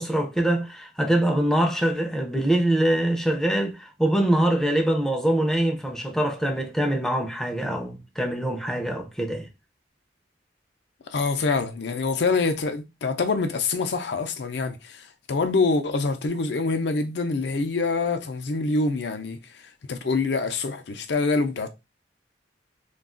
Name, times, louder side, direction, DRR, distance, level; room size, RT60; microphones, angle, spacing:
voice 1, 0.0-9.5, right 1 dB, ahead, 0.4 m, -24 dB
voice 2, 11.1-19.4 19.9-21.7, left 3 dB, 65° left, 0.5 m, -25 dB
2.3 x 2.3 x 3.6 m
head